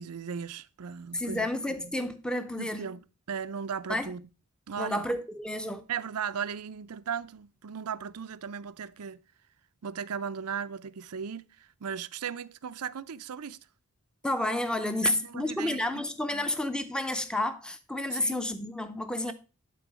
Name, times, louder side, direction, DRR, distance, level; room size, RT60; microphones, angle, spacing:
voice 1, 0.0-1.5 1.8-1.9 2.6-4.2 4.7-5.1 5.9-9.2 9.8-13.6 15.0-16.0 16.3-16.6 18.1-18.4, right 7 dB, 80° right, 0.6 m, -37 dB
voice 2, 1.1-2.8 3.9-4.1 4.8-5.8 14.2-19.3, left 1 dB, 5° left, 0.6 m, -30 dB
11.5 x 3.9 x 6.1 m
head